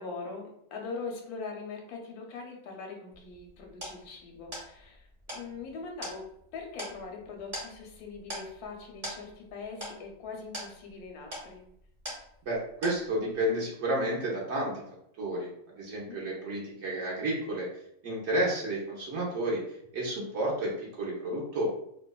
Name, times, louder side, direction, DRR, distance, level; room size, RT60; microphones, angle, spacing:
voice 1, 0.0-6.3 6.5-11.6 15.9-16.3, left 4 dB, 85° left, 1 dB, 1.1 m, -42 dB
sound 1, 3.1-12.6 12.8-13.4, equal, 30° right, 0.9 m, -43 dB
voice 2, 12.4-14.8 15.2-15.5 15.8-17.7 18.0-21.7, right 1 dB, 60° right, -4 dB, 0.8 m, -31 dB
2.8 x 2.2 x 2.2 m, 0.73 s
omnidirectional pair, 1.6 m